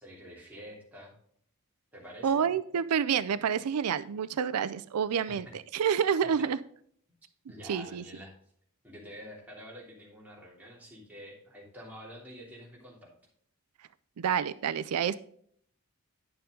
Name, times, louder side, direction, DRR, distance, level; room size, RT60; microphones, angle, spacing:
voice 1, 0.0-1.1 1.9-2.5 5.3-5.5 6.2-6.3 7.5-8.3 8.8-13.1, equal, 10° right, 3.0 m, -47 dB
voice 2, 2.2-6.6 7.7-8.0 14.2-15.2, right 7 dB, 85° right, 0.4 m, -28 dB
9.7 x 6.9 x 3.7 m
head